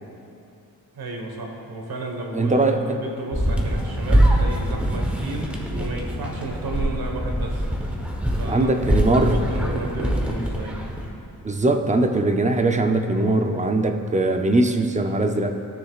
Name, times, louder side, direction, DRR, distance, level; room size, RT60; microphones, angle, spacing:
voice 1, 0.9-7.7 8.4-10.9, right 2 dB, 85° right, 1 dB, 1.4 m, -32 dB
voice 2, 2.3-3.0 8.4-9.4 11.4-15.5, right 2 dB, 20° right, 5 dB, 0.6 m, -21 dB
sound 1, 3.3-11.1, equal, 5° right, 1.0 m, -24 dB
16.5 x 6.7 x 2.4 m, 2.7 s
wide cardioid pair, 115°, 36 cm